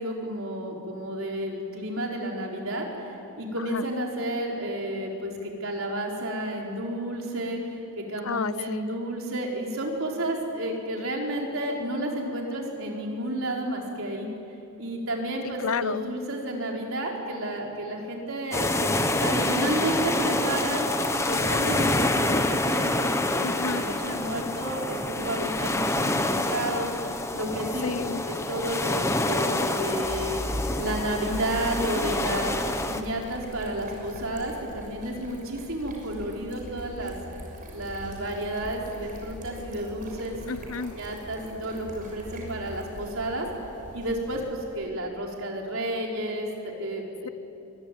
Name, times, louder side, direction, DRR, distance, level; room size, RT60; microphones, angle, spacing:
voice 1, 0.0-7.6 8.0-14.3 14.8-20.9 21.2-27.9 28.3-30.4 30.8-32.6 32.9-37.2 37.7-40.4 40.9-43.5 43.9-47.3, right 1 dB, 65° right, 0 dB, 4.4 m, -31 dB
voice 2, 8.2-8.9 15.6-16.1 23.4-23.8 27.8-28.2 40.5-40.9, left 5 dB, 70° left, 17 dB, 0.6 m, -31 dB
sound 1, 18.5-33.0, left 2 dB, 15° left, 1.0 m, -27 dB
sound 2, 30.0-44.8, equal, 35° right, 6.3 m, -40 dB
24.0 x 21.5 x 9.4 m, 2.8 s
head